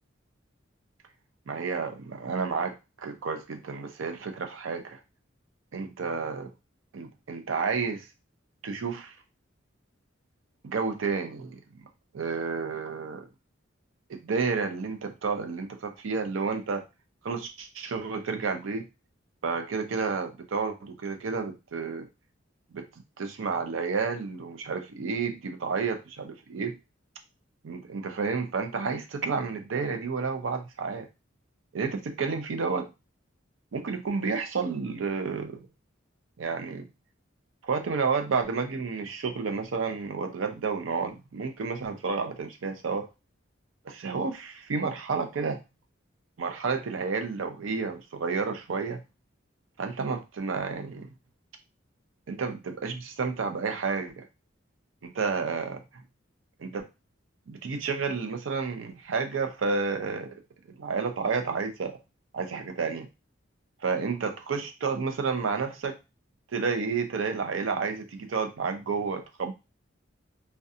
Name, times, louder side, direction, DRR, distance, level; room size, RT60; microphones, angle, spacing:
voice 1, 1.5-5.0 5.7-6.5 6.9-8.1 8.6-9.1 10.6-11.6 12.1-13.3 14.1-16.8 17.2-18.9 19.4-22.1 22.7-22.9 23.2-26.8 27.6-31.1 31.7-32.9 33.7-35.7 36.4-36.9 37.6-43.1 43.9-45.6 46.4-49.0 49.8-51.1 52.3-54.3 55.0-55.8 56.6-56.9 57.5-60.3 60.7-62.0 62.3-63.1 63.8-66.0 66.5-69.5, right 5 dB, 80° right, 6 dB, 0.5 m, -31 dB
2.4 x 2.2 x 2.6 m, 0.26 s
head